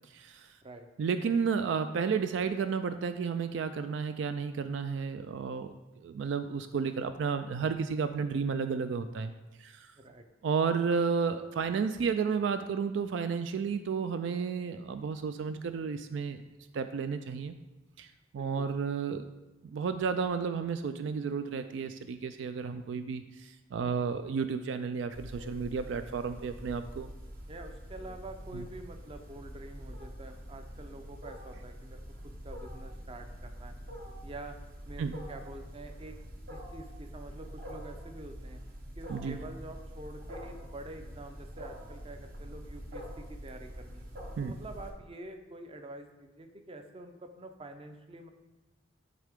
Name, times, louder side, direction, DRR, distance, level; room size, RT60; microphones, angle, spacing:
voice 1, 0.1-0.5 1.0-5.7 6.0-9.3 9.6-9.9 10.4-16.4 16.7-17.5 18.0-18.1 18.3-19.3 19.6-27.1 28.5-28.6 35.0-35.2 39.1-39.4 44.4-44.5, right 5 dB, 75° right, 10 dB, 0.3 m, -32 dB
voice 2, 18.3-18.7 27.5-33.7 34.2-34.6 34.9-36.1 36.5-38.6 39.0-44.1 44.4-48.3, right 2 dB, 30° right, 6 dB, 0.6 m, -47 dB
Wild animals, 25.1-44.9, equal, 50° right, 1.0 m, -45 dB
10.5 x 3.7 x 3.5 m, 1.0 s
head